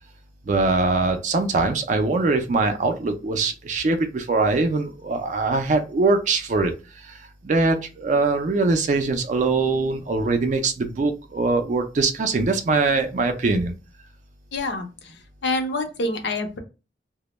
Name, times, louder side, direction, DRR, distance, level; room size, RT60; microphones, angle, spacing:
voice 1, 0.5-6.7 7.0-13.7, right 3 dB, 40° right, 6 dB, 0.3 m, -22 dB
voice 2, 14.5-16.6, left 2 dB, 75° left, 5 dB, 0.5 m, -27 dB
2.1 x 2.0 x 3.0 m, 0.31 s
head